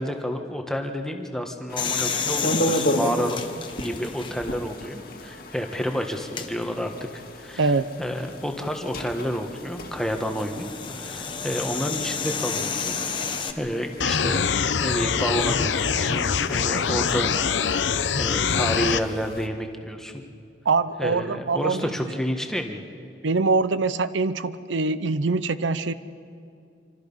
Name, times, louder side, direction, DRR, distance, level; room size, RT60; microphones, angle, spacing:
voice 1, 0.0-3.4 3.7-6.9 7.4-7.7 8.0-10.7 11.0-13.0 13.5-14.4 14.8-17.3 17.7-17.8 18.2-20.2 21.0-22.8, equal, 5° left, 4 dB, 1.4 m, -30 dB
sound 1, 1.7-19.5, left 1 dB, 55° left, 1.9 m, -35 dB
sound 2, 1.8-4.7 5.2-5.3 6.2-6.5 8.6-13.5, left 6 dB, 25° left, 1.2 m, -31 dB
sound 3, 14.0-19.0, left 6 dB, 80° left, 0.8 m, -24 dB
voice 2, 20.7-21.9 23.2-25.9, right 3 dB, 80° right, 14 dB, 0.7 m, -23 dB
26.5 x 25.5 x 5.6 m, 2.4 s
head